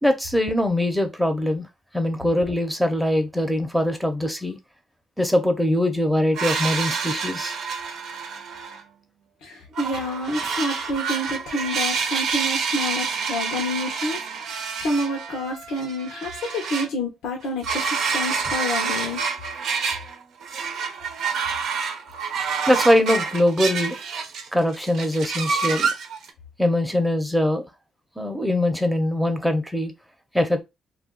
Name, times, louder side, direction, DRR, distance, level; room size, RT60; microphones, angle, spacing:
voice 1, 0.0-1.7 1.9-4.6 5.2-7.5 22.7-24.0 24.5-25.9 26.6-27.7 28.2-29.9 30.3-30.6, left 1 dB, ahead, 0.7 m, -22 dB
sound 1, 6.3-8.8 9.8-16.9 17.4-20.2 20.4-24.5 24.7-26.3, right 5 dB, 75° right, 0.7 m, -28 dB
voice 2, 9.4-19.2, left 1 dB, 80° left, 0.7 m, -28 dB
2.4 x 2.3 x 3.7 m
cardioid pair, 90°, 0 cm